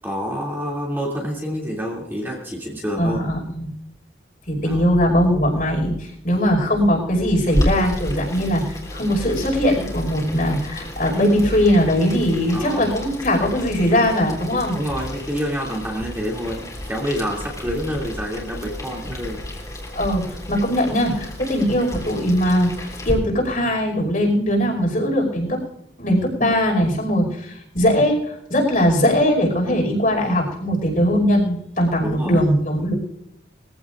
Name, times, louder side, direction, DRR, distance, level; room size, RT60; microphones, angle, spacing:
voice 1, 0.0-3.2 4.6-4.8 12.5-12.9 14.7-19.4 32.0-32.4, equal, 10° right, -3 dB, 2.8 m, -28 dB
voice 2, 3.0-3.7 4.5-14.8 19.9-25.6 26.0-32.9, equal, 50° left, 0 dB, 5.4 m, -20 dB
Boiling, 7.5-23.1, left 1 dB, 20° left, 3.8 m, -32 dB
23.0 x 15.5 x 2.6 m, 0.80 s
head